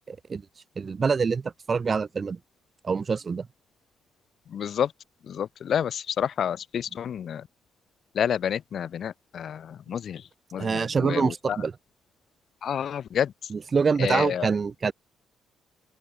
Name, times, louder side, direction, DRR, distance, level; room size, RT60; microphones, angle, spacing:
voice 1, 0.1-0.4 0.8-2.4 2.8-3.5 10.6-11.8 13.5-14.9, right 5 dB, 35° right, 2.8 m, -25 dB
voice 2, 4.5-4.9 5.3-7.4 8.2-10.2 10.5-11.6 12.6-13.3 14.0-14.5, left 8 dB, 60° left, 0.6 m, -29 dB
open air
cardioid pair, 90°, 0 cm